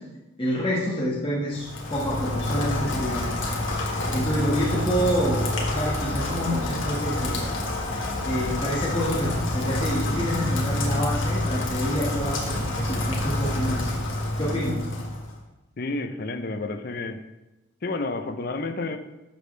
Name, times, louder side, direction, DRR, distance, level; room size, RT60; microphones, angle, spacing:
voice 1, 0.4-3.3 3.8-5.4 5.7-7.4 8.2-13.9 14.4-14.9, equal, 25° left, -7 dB, 1.6 m, -28 dB
Rain, 1.5-15.3, left 1 dB, 75° left, 1.7 m, -27 dB
voice 2, 15.8-17.2 17.8-19.0, left 3 dB, 50° left, 8 dB, 0.6 m, -30 dB
11.5 x 6.6 x 3.3 m, 1.0 s
head